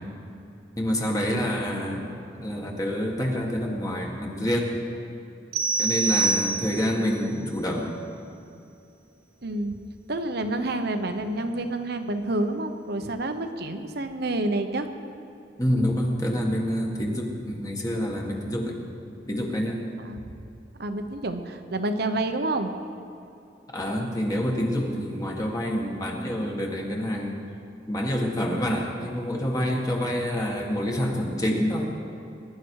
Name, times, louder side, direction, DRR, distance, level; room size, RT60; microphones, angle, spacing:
voice 1, 0.8-2.1 2.4-4.8 5.8-7.9 15.6-18.8 19.3-19.8 23.7-27.4 27.9-31.9, equal, 20° left, -1 dB, 1.9 m, -27 dB
sound 1, 5.5-7.1, right 3 dB, 80° right, 1.7 m, -25 dB
voice 2, 9.4-9.8 10.1-14.9 20.0-20.2 20.8-22.7, right 2 dB, 65° right, 7 dB, 1.1 m, -28 dB
22.0 x 11.5 x 4.8 m, 2.7 s
head